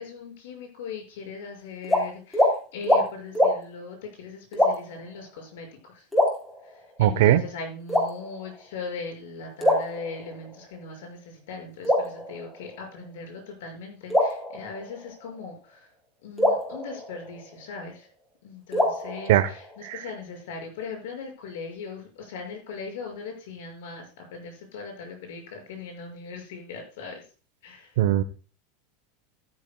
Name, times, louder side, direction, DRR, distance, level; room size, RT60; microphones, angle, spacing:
voice 1, 0.0-6.1 6.6-15.9 16.2-18.1 18.4-27.2 27.6-28.0, left 4 dB, 75° left, 2 dB, 6.1 m, -39 dB
sound 1, 1.8-2.0 2.3-2.5 2.8-3.0 3.3-3.5 4.5-5.0 6.1-7.0 7.9-8.6 9.6-10.6 11.8-13.0 14.1-15.3 16.4-17.8 18.7-19.9, left 1 dB, 10° left, 3.6 m, -25 dB
voice 2, 7.0-7.4 19.3-19.4 28.0-28.2, right 12 dB, 70° right, 14 dB, 0.9 m, -18 dB
13.5 x 12.5 x 2.3 m, 0.36 s
supercardioid pair, 155°, 0 cm